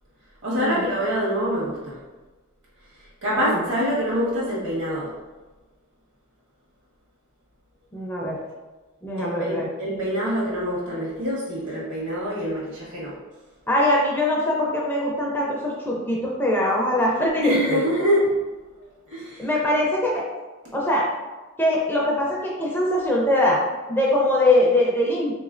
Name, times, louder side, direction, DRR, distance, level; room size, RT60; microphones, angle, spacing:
voice 1, 0.4-2.0 3.0-5.1 9.2-13.1 17.4-18.3 19.1-19.5, equal, 70° right, -7 dB, 1.4 m, -25 dB
voice 2, 7.9-8.4 9.0-9.7 13.7-17.8 19.4-20.3 20.7-21.1 21.6-23.6 23.9-25.4, left 1 dB, 10° left, -4 dB, 0.4 m, -22 dB
3.3 x 3.1 x 2.4 m, 1.2 s
head